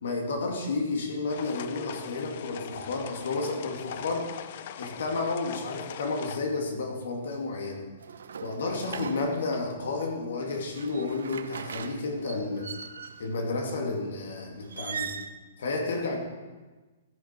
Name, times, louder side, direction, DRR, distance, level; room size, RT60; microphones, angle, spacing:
voice 1, 0.0-4.3 4.8-7.9 8.4-12.7 13.2-15.1 15.6-16.2, left 3 dB, 80° left, 2 dB, 2.2 m, -31 dB
sound 1, 1.3-6.4, left 10 dB, 50° left, 0.5 m, -42 dB
sound 2, 8.0-9.7 10.5-13.4 14.6-15.3, right 6 dB, 90° right, 0.7 m, -40 dB
14.5 x 7.0 x 4.4 m, 1.3 s
hypercardioid pair, 155°, 0 cm